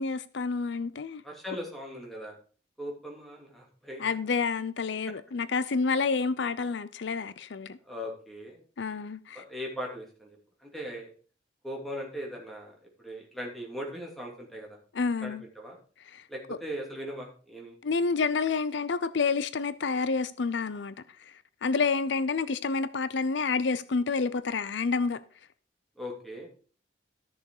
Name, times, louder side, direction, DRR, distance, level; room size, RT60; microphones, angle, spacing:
voice 1, 0.0-1.2 4.0-7.8 8.8-9.4 14.9-15.4 16.1-16.2 16.5-16.6 17.8-20.9 21.6-25.2, left 4 dB, 70° left, 0.5 m, -29 dB
voice 2, 1.2-2.4 2.8-4.2 7.8-8.6 9.3-11.1 11.6-14.8 15.2-15.8 16.3-17.7 26.0-26.5, equal, ahead, 2.9 m, -39 dB
13.0 x 6.7 x 4.8 m
head